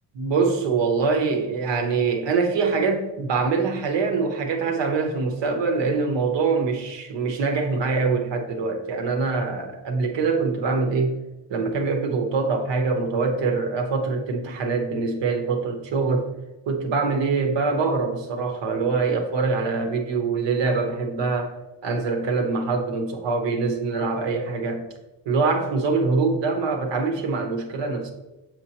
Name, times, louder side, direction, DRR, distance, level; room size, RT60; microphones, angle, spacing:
voice 1, 0.1-11.2 11.5-16.3 16.7-24.8 25.2-28.1, right 4 dB, 85° right, 4 dB, 1.1 m, -24 dB
7.4 x 4.5 x 2.9 m, 1.0 s
cardioid pair, 90°, 42 cm